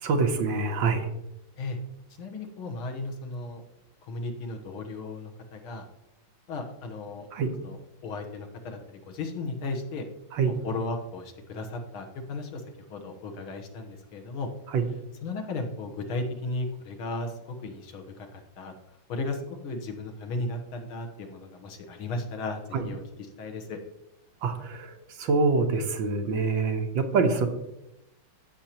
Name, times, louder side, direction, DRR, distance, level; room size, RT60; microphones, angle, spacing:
voice 1, 0.0-1.1 7.3-7.5 10.4-10.5 14.7-14.8 22.7-22.8 24.4-27.5, right 4 dB, 70° right, 5 dB, 1.6 m, -25 dB
voice 2, 2.2-3.6 4.0-5.9 6.5-7.3 7.6-10.1 10.5-12.6 12.9-14.5 15.2-18.7 19.1-23.0 23.4-23.8, left 2 dB, 75° left, 4 dB, 2.0 m, -35 dB
15.0 x 6.5 x 2.9 m, 0.88 s
omnidirectional pair, 2.3 m